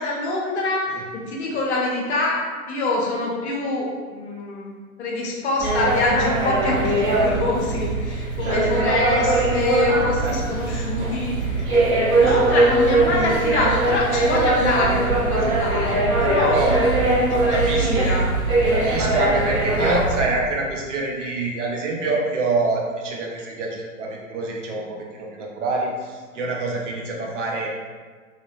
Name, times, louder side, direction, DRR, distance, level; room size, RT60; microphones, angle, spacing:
voice 1, 0.0-2.4 2.7-4.7 5.0-11.8 12.1-17.2 17.5-18.4, left 2 dB, 50° left, -3 dB, 0.7 m, -25 dB
sound 1, 5.6-20.2, right 2 dB, 25° right, 1.2 m, -21 dB
voice 2, 16.4-17.0 17.5-18.1 18.7-27.7, right 2 dB, 55° right, -1 dB, 0.6 m, -26 dB
2.9 x 2.4 x 2.4 m, 1.5 s
figure-of-eight pair, 105°, 44 cm